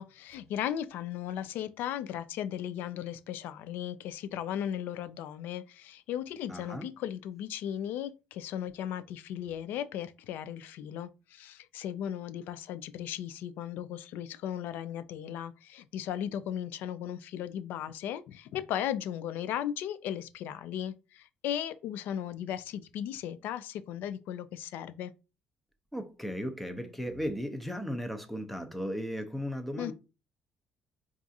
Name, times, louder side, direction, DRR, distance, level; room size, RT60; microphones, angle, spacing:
voice 1, 0.0-25.1 29.8-29.9, left 10 dB, 75° left, 0.3 m, -36 dB
voice 2, 6.5-6.9 25.9-29.9, equal, 5° left, 0.5 m, -36 dB
4.6 x 2.4 x 2.6 m
cardioid pair, 130°, 3 cm